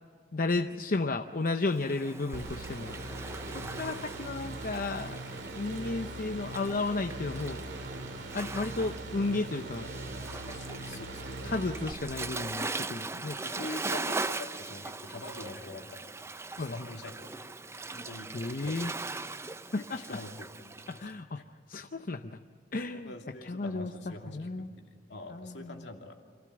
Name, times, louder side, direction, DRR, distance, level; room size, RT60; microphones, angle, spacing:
voice 1, 0.3-3.0 3.5-5.2 5.5-7.6 8.3-9.9 11.4-13.4 16.6-16.9 18.3-18.9 19.7-20.0 20.9-21.4 21.7-22.4 22.7-23.1 23.4-23.9 24.3-24.7 25.3-25.8, left 3 dB, 50° left, 6 dB, 0.7 m, -33 dB
Waves surf, 1.6-21.0, right 3 dB, 15° right, 0.5 m, -40 dB
sound 1, 2.3-11.9, right 2 dB, 75° right, 2.1 m, -41 dB
voice 2, 3.5-3.8 10.5-11.7 13.2-16.1 16.6-17.1 17.4-17.5 17.9-18.9 19.7-21.4 22.9-24.8 25.1-26.2, left 2 dB, 70° left, 2 dB, 2.6 m, -45 dB
26.5 x 16.5 x 7.9 m, 2.2 s
head